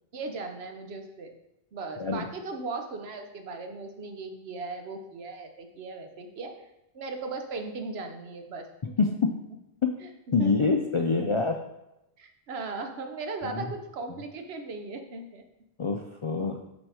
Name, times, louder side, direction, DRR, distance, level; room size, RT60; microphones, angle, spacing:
voice 1, 0.1-1.3 1.7-6.5 6.9-9.3 10.0-10.1 10.4-10.7 11.0-11.3 12.2-15.4, right 3 dB, 75° right, 5 dB, 1.0 m, -38 dB
voice 2, 9.0-9.3 9.8-9.9 10.3-11.6 13.5-13.6 15.8-16.6, left 4 dB, 55° left, 3 dB, 0.3 m, -25 dB
6.2 x 4.2 x 4.8 m, 0.89 s
omnidirectional pair, 1.1 m